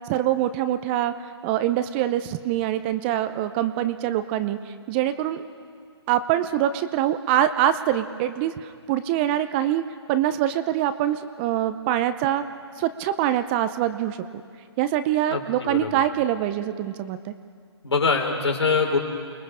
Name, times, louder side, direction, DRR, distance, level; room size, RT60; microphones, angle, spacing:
voice 1, 0.1-1.1 1.4-5.4 6.1-9.8 10.1-12.4 12.8-14.2 14.8-17.3, right 12 dB, 25° right, 11 dB, 0.7 m, -24 dB
voice 2, 15.3-15.9 17.8-19.0, left 4 dB, 75° left, 1 dB, 4.8 m, -23 dB
29.0 x 21.0 x 5.0 m, 2.1 s
figure-of-eight pair, 140°, 14 cm